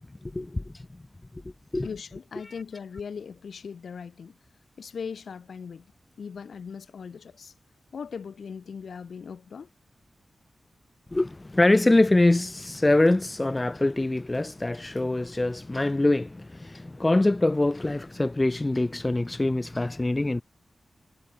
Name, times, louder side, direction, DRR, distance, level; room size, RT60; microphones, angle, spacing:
voice 1, 0.3-0.6 1.7-1.9 11.1-20.4, left 2 dB, 20° left, 0.7 m, -24 dB
voice 2, 1.8-4.4 4.8-5.9 6.2-7.5 7.9-9.7, left 6 dB, 85° left, 6.6 m, -39 dB
wide cardioid pair, 145°, 0 cm